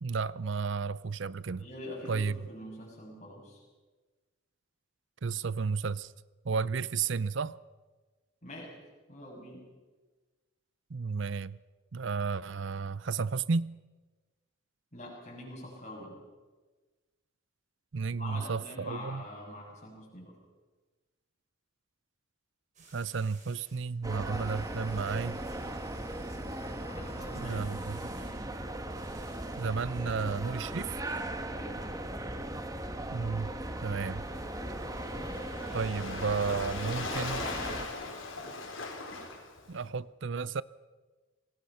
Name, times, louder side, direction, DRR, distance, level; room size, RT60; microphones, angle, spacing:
voice 1, 0.0-1.7 2.1-2.4 5.2-6.1 6.4-7.6 10.9-11.6 11.9-13.8 17.9-19.2 22.9-25.4 27.4-28.0 29.6-31.0 33.1-33.5 33.8-34.2 35.7-37.4 39.7-40.6, right 5 dB, 65° right, 0.6 m, -32 dB
voice 2, 1.6-3.6 8.4-8.8 9.1-9.6 14.9-16.2 18.1-20.4 26.9-27.7 31.5-32.0, left 1 dB, 35° left, 6.9 m, -44 dB
sound 1, 22.7-23.8 24.2-28.4 28.9-30.0 30.5-31.2, right 4 dB, 35° right, 4.7 m, -59 dB
sound 2, 24.0-37.9, right 1 dB, 15° right, 1.3 m, -38 dB
Waves surf, 34.2-39.9, left 3 dB, 75° left, 4.7 m, -40 dB
27.0 x 19.0 x 5.8 m
head